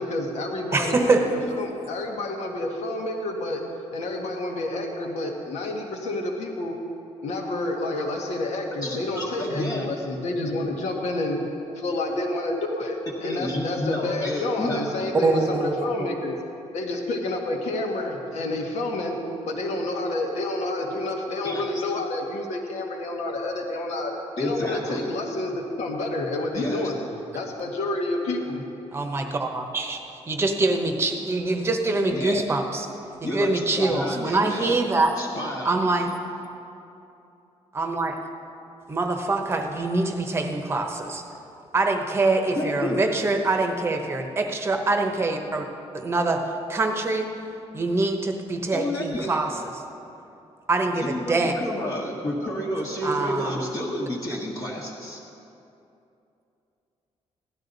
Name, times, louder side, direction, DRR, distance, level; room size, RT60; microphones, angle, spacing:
voice 1, 0.0-3.6 3.9-6.8 7.2-11.4 11.7-16.4 16.7-19.2 19.4-27.0 27.3-28.6, left 2 dB, 80° left, 1 dB, 1.5 m, -29 dB
voice 2, 0.7-1.3 15.2-16.1 28.9-30.0 30.3-32.9 33.2-35.2 35.6-36.1 37.7-38.2 38.9-41.2 41.7-45.6 45.9-47.4 47.7-49.8 50.7-51.5 53.0-53.6, right 2 dB, 20° right, 4 dB, 0.9 m, -24 dB
voice 3, 8.7-9.9 13.2-14.8 21.4-21.8 24.4-25.1 26.5-26.9 32.1-32.4 33.2-34.7 35.2-35.7 42.6-43.0 48.7-49.3 51.0-55.2, left 1 dB, 35° left, -7 dB, 1.4 m, -30 dB
16.5 x 12.0 x 4.0 m, 2.8 s
cardioid pair, 170°, 11 cm